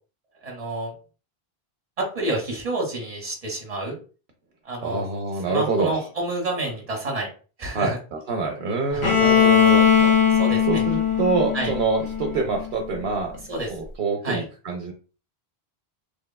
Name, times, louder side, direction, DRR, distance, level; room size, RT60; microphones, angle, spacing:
voice 1, 0.4-0.9 2.0-3.9 4.6-5.0 5.5-7.3 7.6-8.0 8.9-9.1 9.9-10.8 11.5-11.7 13.5-13.7 14.2-14.4, right 2 dB, 40° right, 1 dB, 1.0 m, -29 dB
voice 2, 4.8-6.0 7.7-10.2 10.7-13.3 13.7-14.9, right 4 dB, 70° right, 2 dB, 0.8 m, -26 dB
Bowed string instrument, 9.0-12.9, left 7 dB, 40° left, 0.5 m, -19 dB
3.1 x 2.2 x 2.2 m, 0.36 s
omnidirectional pair, 1.1 m